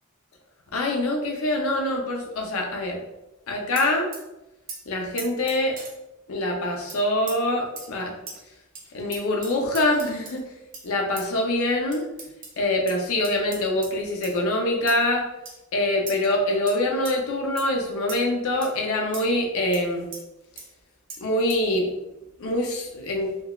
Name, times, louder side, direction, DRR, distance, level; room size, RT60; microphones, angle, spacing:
voice 1, 0.7-3.0 3.5-4.1 4.9-5.8 6.3-8.2 8.9-10.4 10.8-12.0 12.6-15.3 15.7-20.1 21.2-21.9 22.4-23.3, left 1 dB, 70° left, 2 dB, 0.6 m, -24 dB
sound 1, 3.8-4.2 4.7-4.8 5.2-5.9 6.9-7.0 7.3-7.4 7.8-7.9 8.3-8.4 8.8-8.9 9.1-10.4 10.7-10.9 11.2-11.3 11.9-12.6 12.9-13.0 13.2-13.9 14.2-14.4 14.9-15.0 15.5-15.6 16.1-16.3 16.7-16.8 17.1-17.2 17.6-17.7 18.1-18.3 18.6-18.7 19.1-19.2 19.7-19.8 20.1-20.2 20.6-20.7 21.1-21.2 21.5-21.6, right 4 dB, 40° right, 0.7 m, -38 dB
3.7 x 2.3 x 2.3 m, 0.95 s
head